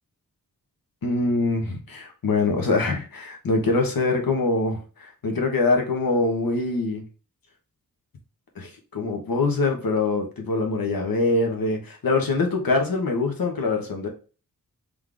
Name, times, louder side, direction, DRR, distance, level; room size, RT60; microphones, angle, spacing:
voice 1, 1.0-7.0 8.5-14.1, left 3 dB, 80° left, 3 dB, 1.3 m, -24 dB
3.9 x 3.4 x 3.3 m, 0.36 s
cardioid pair, 65°, 34 cm